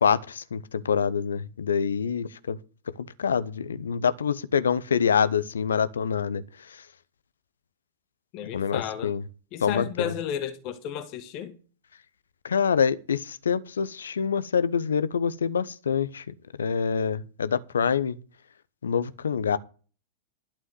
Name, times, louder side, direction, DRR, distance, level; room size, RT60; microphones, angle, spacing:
voice 1, 0.0-2.6 3.2-6.4 8.5-9.2 9.6-10.1 12.4-16.2 16.6-18.2 18.8-19.6, left 6 dB, 70° left, 0.8 m, -26 dB
voice 2, 8.3-9.1 9.5-11.5, left 9 dB, 40° left, 1.5 m, -33 dB
12.0 x 5.6 x 7.9 m
figure-of-eight pair, 95°, 0 cm